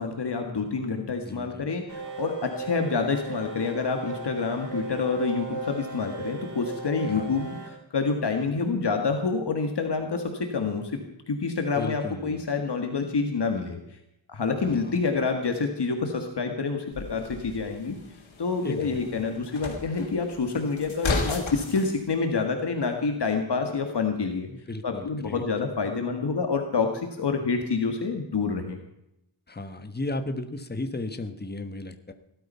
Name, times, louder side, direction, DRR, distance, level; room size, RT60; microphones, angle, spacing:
voice 1, 0.0-10.9 11.3-13.8 14.3-18.0 18.4-24.5 24.8-28.8, left 4 dB, 60° left, 4 dB, 2.0 m, -27 dB
voice 2, 1.2-1.7 7.1-7.3 11.8-12.4 14.6-15.0 18.6-19.0 24.5-25.4 29.5-32.1, left 2 dB, 20° left, 8 dB, 1.4 m, -35 dB
sound 1, 1.9-7.7, right 3 dB, 40° right, 5.9 m, -37 dB
sound 2, 16.9-21.9, left 4 dB, 90° left, 3.1 m, -34 dB
18.0 x 12.5 x 5.7 m, 0.83 s
wide cardioid pair, 95°, 45 cm